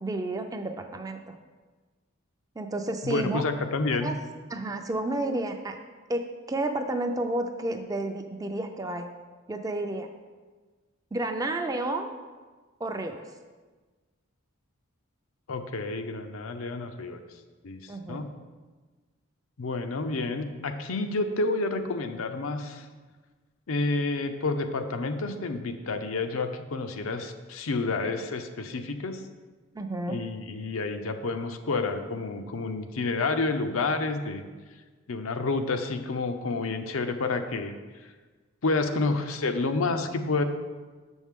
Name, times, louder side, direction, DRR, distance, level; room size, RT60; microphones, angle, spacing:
voice 1, 0.0-1.3 2.6-3.4 4.0-4.1 4.5-5.8 6.1-9.1 9.5-10.1 11.1-12.1 12.8-13.2 17.9-18.3 29.7-30.2, right 2 dB, 15° right, 6 dB, 0.4 m, -31 dB
voice 2, 3.0-4.1 15.5-17.2 17.6-18.3 19.6-22.9 23.7-29.2 30.1-34.4 35.1-38.1 38.6-40.4, left 3 dB, 80° left, 7 dB, 0.6 m, -29 dB
7.3 x 6.2 x 3.6 m, 1.3 s
head